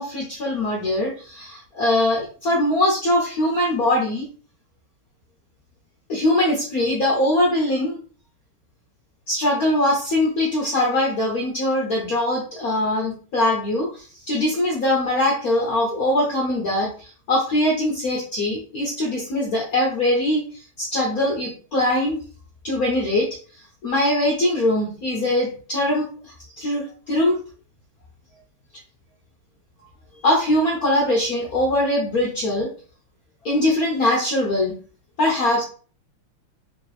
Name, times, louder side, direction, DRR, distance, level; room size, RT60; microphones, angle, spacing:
voice 1, 0.0-4.3 6.1-8.0 9.3-22.2 22.6-23.3 23.8-27.4 30.2-32.7 33.4-34.7 35.2-35.6, left 1 dB, 60° left, -3 dB, 1.0 m, -22 dB
3.3 x 2.8 x 3.1 m, 0.40 s
omnidirectional pair, 2.4 m